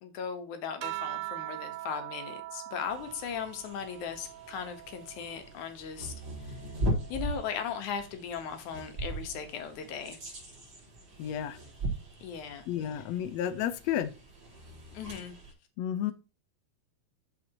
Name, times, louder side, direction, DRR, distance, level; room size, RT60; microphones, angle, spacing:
voice 1, 0.0-6.1 6.5-6.6 7.1-10.2 12.2-12.7 12.9-13.1 14.9-15.3, left 7 dB, 65° left, 2.5 m, -38 dB
sound 1, 0.8-5.6 6.1-7.8 9.0-9.5, right 18 dB, 80° right, 1.8 m, -43 dB
sound 2, 2.9-15.5, right 1 dB, 30° right, 4.6 m, -39 dB
voice 2, 11.2-11.6 12.7-14.1 15.8-16.1, left 10 dB, 85° left, 1.5 m, -31 dB
13.0 x 5.0 x 2.9 m
omnidirectional pair, 4.0 m